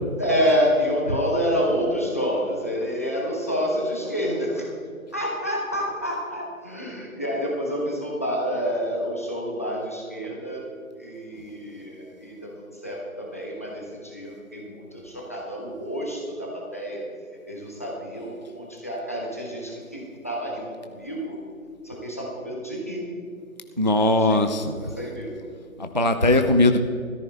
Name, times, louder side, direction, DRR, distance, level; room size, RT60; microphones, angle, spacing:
voice 1, 0.2-4.7 5.1-10.6 10.9-17.1 17.5-21.4 21.8-23.1 23.9-24.4 24.8-25.5, equal, 10° left, -2 dB, 0.7 m, -28 dB
voice 2, 23.8-24.8 25.8-26.8, left 2 dB, 35° right, 7 dB, 0.4 m, -19 dB
15.0 x 13.5 x 3.4 m, 2.4 s
figure-of-eight pair, 155°, 42 cm